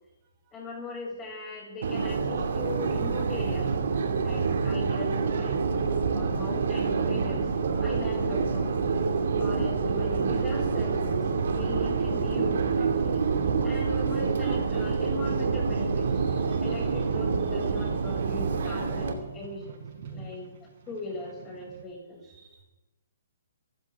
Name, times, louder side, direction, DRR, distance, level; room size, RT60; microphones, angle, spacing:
voice 1, 0.5-3.7 4.2-7.5 7.8-8.7 9.4-13.2 13.6-16.1 16.6-19.8 20.1-22.2, left 2 dB, 20° left, -2 dB, 7.0 m, -39 dB
Subway metro underground, 1.8-19.1, right 5 dB, 70° right, 2.5 m, -27 dB
sound 1, 8.9-21.8, right 5 dB, 55° right, 6.6 m, -48 dB
voice 2, 16.2-16.7 17.8-18.1 22.2-22.6, right 4 dB, 30° right, 0 dB, 4.4 m, -57 dB
23.0 x 14.5 x 3.7 m, 1.0 s
hypercardioid pair, 140°, 0 cm